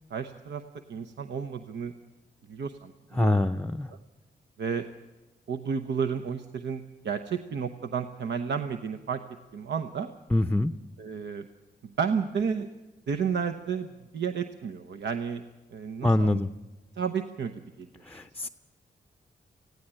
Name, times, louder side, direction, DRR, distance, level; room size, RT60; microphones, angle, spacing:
voice 1, 0.1-0.6 0.9-1.9 2.5-3.4 4.6-4.8 5.5-9.2 9.5-10.1 11.0-11.5 12.0-12.7 13.1-15.4 15.7-16.4 17.0-17.5 17.8-17.9, right 6 dB, 80° right, 6 dB, 0.9 m, -31 dB
voice 2, 3.1-3.9 10.3-10.7 16.0-16.5 18.0-18.5, left 1 dB, 10° left, 9 dB, 0.6 m, -24 dB
18.5 x 16.0 x 8.9 m, 1.1 s
cardioid pair, 75°, 18 cm